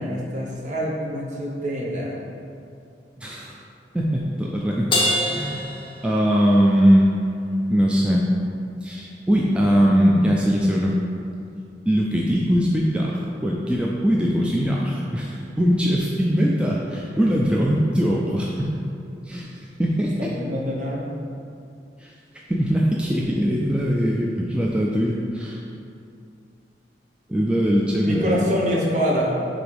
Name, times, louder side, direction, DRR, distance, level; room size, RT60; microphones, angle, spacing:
voice 1, 0.0-2.2 20.2-21.0 28.0-29.4, equal, 45° right, -4 dB, 1.0 m, -25 dB
voice 2, 3.2-3.6 3.9-5.0 5.3-5.7 6.0-7.1 7.7-8.3 8.8-10.9 11.9-18.7 19.3-20.3 22.0-22.1 22.5-25.6 27.3-28.5, equal, 5° right, -4 dB, 0.4 m, -21 dB
Crash cymbal, 4.9-6.6, left 1 dB, 30° left, 0.9 m, -25 dB
4.8 x 3.8 x 5.3 m, 2.5 s
head